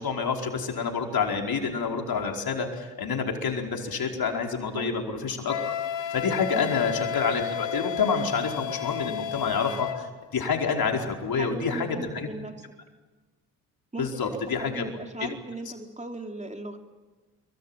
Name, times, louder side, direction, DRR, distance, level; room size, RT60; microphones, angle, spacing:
voice 1, 0.0-5.5 6.1-12.3 14.0-14.9, left 5 dB, 50° left, 2 dB, 4.8 m, -28 dB
Wind instrument woodwind instrument, 5.5-10.0, left 9 dB, 70° left, 2.1 m, -32 dB
voice 2, 11.3-12.5 13.9-14.2 14.6-16.8, right 2 dB, 15° right, 4 dB, 2.9 m, -37 dB
24.5 x 24.0 x 9.0 m, 1.3 s
supercardioid pair, 60°, 45 cm